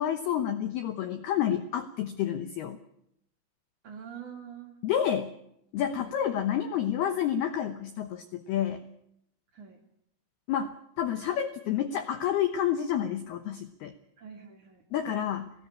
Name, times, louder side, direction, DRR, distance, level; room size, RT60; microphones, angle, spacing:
voice 1, 0.0-2.8 4.8-5.3 5.7-8.8 10.5-13.9 14.9-15.5, left 10 dB, 75° left, 8 dB, 2.3 m, -29 dB
voice 2, 3.8-4.8 6.0-6.2 9.5-9.8 14.2-14.8, right 7 dB, 45° right, 2 dB, 3.0 m, -45 dB
21.0 x 17.5 x 8.7 m, 0.76 s
omnidirectional pair, 6.0 m